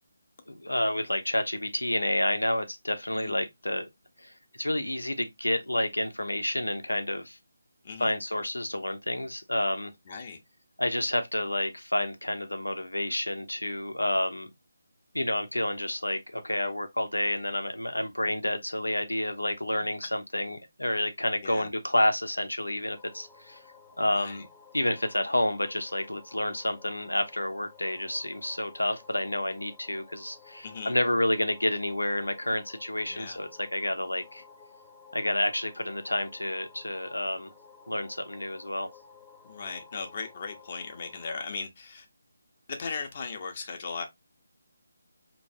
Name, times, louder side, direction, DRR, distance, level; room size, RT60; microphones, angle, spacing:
voice 1, 0.5-3.9 4.2-7.4 8.0-9.9 10.8-14.5 15.1-23.6 24.0-24.5 24.7-34.4 35.1-37.5 37.9-38.9, left 1 dB, 90° left, 0.9 m, -29 dB
voice 2, 7.8-8.1 10.1-10.4 21.4-21.7 24.1-24.4 30.6-31.0 33.1-33.4 39.4-42.1 42.7-44.0, left 5 dB, 40° left, 0.9 m, -37 dB
sound 1, 22.9-41.4, left 4 dB, 5° left, 0.7 m, -54 dB
4.7 x 3.1 x 2.6 m
figure-of-eight pair, 155°, 0 cm